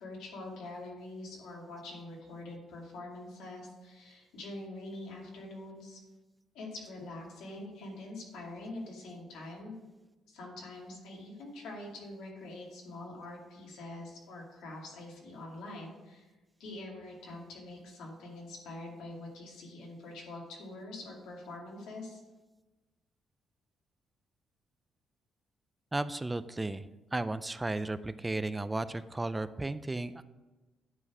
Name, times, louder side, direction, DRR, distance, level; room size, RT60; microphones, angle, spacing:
voice 1, 0.0-6.0 6.5-9.7 10.3-16.3 16.6-22.2, left 2 dB, 90° left, -2 dB, 2.3 m, -44 dB
voice 2, 25.9-30.2, right 2 dB, 15° right, 13 dB, 0.4 m, -34 dB
9.8 x 4.0 x 6.1 m, 1.2 s
cardioid pair, 90°, 0 cm